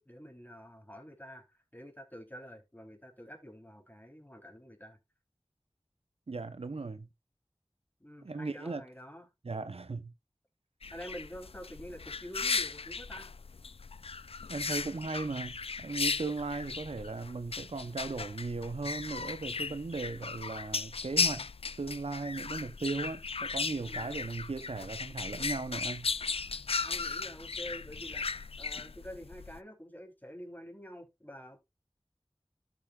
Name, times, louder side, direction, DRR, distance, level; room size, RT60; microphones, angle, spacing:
voice 1, 0.0-5.0 8.0-9.3 10.9-13.3 23.9-24.2 26.7-31.6, equal, 20° left, 3.3 m, -48 dB
voice 2, 6.3-7.1 8.2-8.8 9.4-10.1 14.5-21.5 21.8-26.1, right 3 dB, 85° right, 0.7 m, -37 dB
sound 1, 10.8-29.6, left 4 dB, 75° left, 0.4 m, -36 dB
13.0 x 7.0 x 2.3 m
wide cardioid pair, 40°, 10 cm